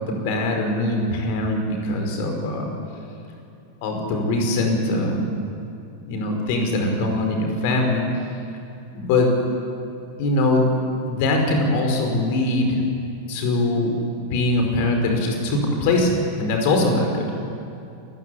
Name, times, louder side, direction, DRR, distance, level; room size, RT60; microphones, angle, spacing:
voice 1, 0.1-2.7 3.8-5.3 6.1-8.1 8.9-9.5 10.2-10.6 11.1-12.8 13.3-13.9 14.3-17.3, left 2 dB, 50° left, 3 dB, 5.1 m, -22 dB
27.5 x 15.5 x 8.5 m, 2.6 s
figure-of-eight pair, 90°, 0 cm